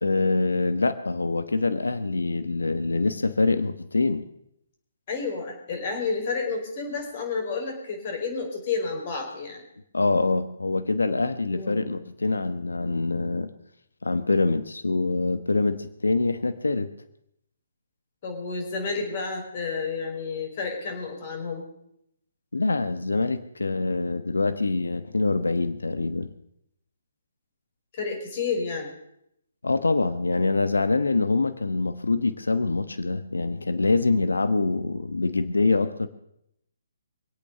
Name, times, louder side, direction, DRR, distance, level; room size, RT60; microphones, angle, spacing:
voice 1, 0.0-4.2 9.9-13.5 14.0-16.9 22.5-26.3 29.6-36.1, left 3 dB, 90° left, 11 dB, 1.1 m, -25 dB
voice 2, 5.1-9.6 11.5-11.9 18.2-21.6 27.9-28.9, left 4 dB, 40° left, 3 dB, 5.4 m, -30 dB
23.5 x 8.7 x 6.7 m, 0.78 s
hypercardioid pair, 145°, 0 cm